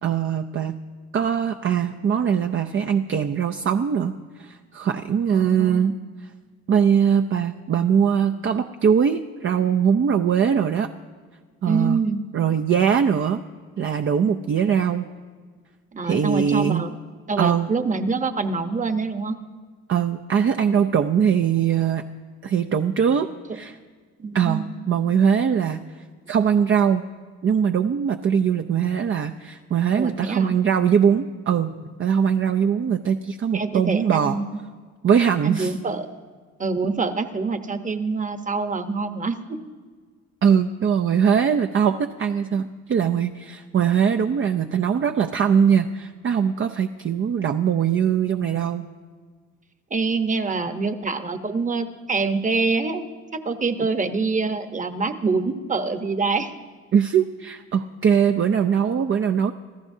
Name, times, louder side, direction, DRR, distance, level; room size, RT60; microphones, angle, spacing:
voice 1, 0.0-0.8 1.1-5.9 6.7-10.9 11.6-12.0 12.3-13.4 13.8-15.1 16.0-16.8 17.4-17.7 19.9-22.0 22.4-23.3 23.5-23.8 24.3-25.8 26.3-27.0 27.4-31.7 32.0-34.4 35.0-35.7 40.4-48.9 56.9-59.5, right 7 dB, 40° right, 6 dB, 0.6 m, -21 dB
voice 2, 5.3-6.0 11.6-12.2 15.9-16.9 17.3-19.4 24.2-24.7 30.0-30.6 33.5-34.4 35.4-36.1 36.6-39.4 49.9-53.0 53.4-56.5, right 4 dB, 25° right, 9 dB, 1.0 m, -25 dB
27.0 x 14.0 x 2.7 m, 1.6 s
cardioid pair, 90°, 30 cm